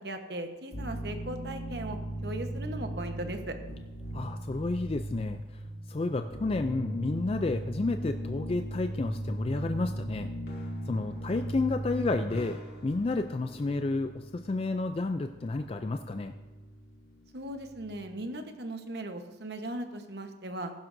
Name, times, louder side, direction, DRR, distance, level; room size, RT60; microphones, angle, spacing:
voice 1, 0.0-2.0 2.2-3.6 17.3-20.7, right 1 dB, 60° right, 6 dB, 1.1 m, -38 dB
sound 1, 0.7-18.1, right 1 dB, 60° left, 2.2 m, -38 dB
voice 2, 4.1-5.4 5.9-10.3 10.6-16.3, left 3 dB, 30° left, 8 dB, 0.3 m, -31 dB
15.5 x 11.5 x 2.6 m, 1.2 s
head